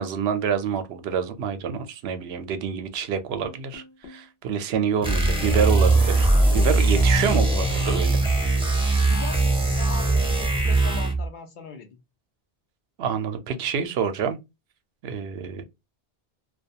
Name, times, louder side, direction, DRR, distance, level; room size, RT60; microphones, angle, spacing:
voice 1, 0.0-6.3 6.5-8.2 13.0-14.4 15.0-15.6, right 7 dB, 85° right, 0.8 m, -27 dB
sound 1, 3.4-4.3 5.2-8.7, left 5 dB, 85° left, 0.9 m, -39 dB
sound 2, 5.0-11.3, right 2 dB, 5° right, 0.5 m, -21 dB
voice 2, 6.3-6.9 9.1-12.0, left 5 dB, 60° left, 0.6 m, -40 dB
2.3 x 2.3 x 2.6 m
omnidirectional pair, 1.0 m